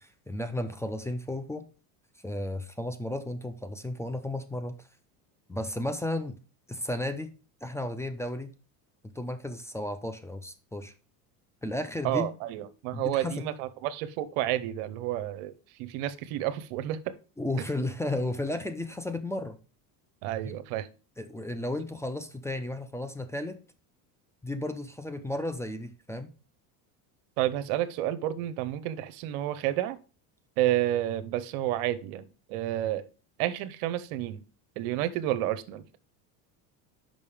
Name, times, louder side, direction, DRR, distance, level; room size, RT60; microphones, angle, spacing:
voice 1, 0.0-1.6 2.2-4.8 5.5-6.4 6.7-7.3 7.6-8.5 9.0-10.9 11.6-12.3 12.9-13.4 17.4-19.6 21.2-23.6 24.4-26.3, left 1 dB, 5° left, 0.7 m, -33 dB
voice 2, 12.0-17.1 20.2-20.9 27.4-30.0 30.6-33.1 33.4-34.4 34.8-35.8, right 13 dB, 70° right, 0.8 m, -30 dB
5.4 x 5.3 x 4.9 m
supercardioid pair, 95°, 45 cm